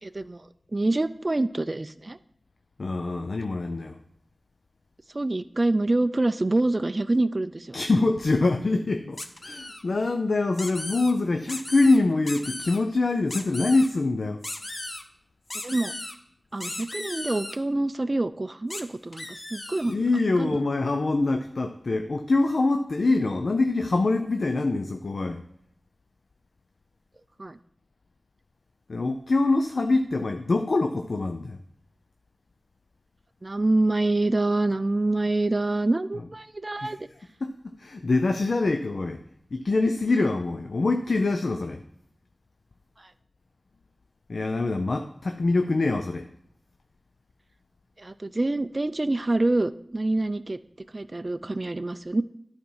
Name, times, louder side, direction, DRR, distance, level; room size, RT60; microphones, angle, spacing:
voice 1, 0.0-2.2 5.1-7.8 15.6-15.9 16.5-20.0 20.4-20.6 27.4-27.6 33.4-37.0 48.0-50.6 50.9-52.2, right 2 dB, 40° right, 12 dB, 0.4 m, -26 dB
voice 2, 2.8-4.0 7.7-14.4 19.8-25.4 28.9-31.6 36.8-36.9 37.4-39.2 39.5-41.8 44.3-46.3, left 3 dB, 70° left, 7 dB, 0.5 m, -24 dB
sound 1, 9.2-9.8 10.5-11.1 11.5-12.0 12.3-12.8 13.3-13.9 14.4-15.0 15.5-16.1 16.6-17.6 18.7-18.8 19.1-19.9, left 1 dB, 45° left, 0.8 m, -36 dB
11.5 x 4.4 x 5.5 m, 0.72 s
wide cardioid pair, 65°, 0 cm